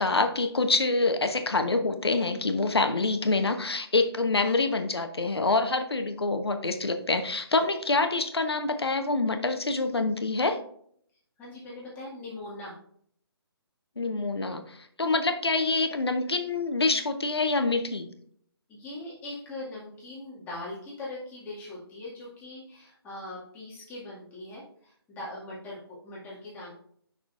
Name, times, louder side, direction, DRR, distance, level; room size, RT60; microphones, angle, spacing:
voice 1, 0.0-10.6 14.0-18.1, left 3 dB, 70° left, 7 dB, 1.0 m, -26 dB
voice 2, 11.4-12.8 18.7-26.7, left 2 dB, 10° left, -6 dB, 2.1 m, -41 dB
8.3 x 6.1 x 2.5 m, 0.63 s
figure-of-eight pair, 140°, 14 cm